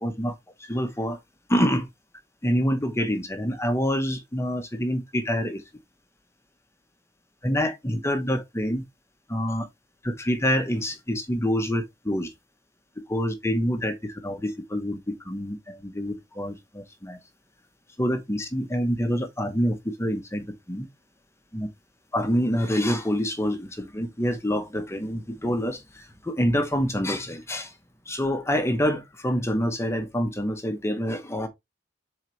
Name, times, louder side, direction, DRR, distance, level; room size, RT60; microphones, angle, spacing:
voice 1, 0.0-0.3 0.7-1.2 1.5-1.9 2.4-5.6 7.4-8.8 9.3-9.7 10.0-12.3 13.1-17.2 18.0-20.9 21.5-21.7 22.1-27.7 28.1-31.5, equal, 15° left, 1.0 m, -26 dB
7.4 x 4.0 x 3.2 m
head